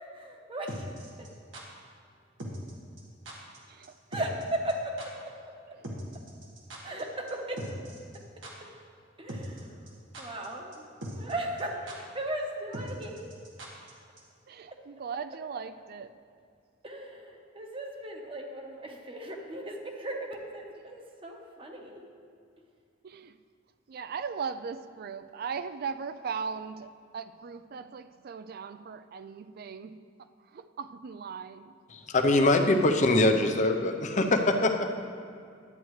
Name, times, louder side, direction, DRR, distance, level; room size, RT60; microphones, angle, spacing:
voice 1, 0.1-1.3 4.1-5.1 6.8-7.6 8.6-8.7 9.2-9.8 10.2-10.9 11.2-11.8 12.1-13.3 14.7-14.8 15.6-15.7 16.8-22.0, right 1 dB, 30° right, 2 dB, 1.0 m, -37 dB
sound 1, 0.7-1.6 2.4-2.7 3.0-3.1 3.3-3.6 3.8-3.9 4.1-4.4 4.7-4.8 5.0-5.1 5.8-7.0 7.3-7.4 7.6-8.2 8.4-8.5 9.3-9.6 9.9-10.5 10.7-10.8 11.0-11.3 11.6-11.7 11.9-12.0 12.7-13.9 14.2-14.3, right 1 dB, 85° right, 1.6 m, -40 dB
voice 2, 14.5-16.1 20.7-20.8 23.0-23.4 23.9-30.0 30.5-31.7, right 6 dB, 55° right, 12 dB, 0.4 m, -38 dB
voice 3, 31.9-34.9, left 2 dB, 40° left, 5 dB, 0.6 m, -23 dB
11.0 x 9.0 x 3.2 m, 2.3 s
head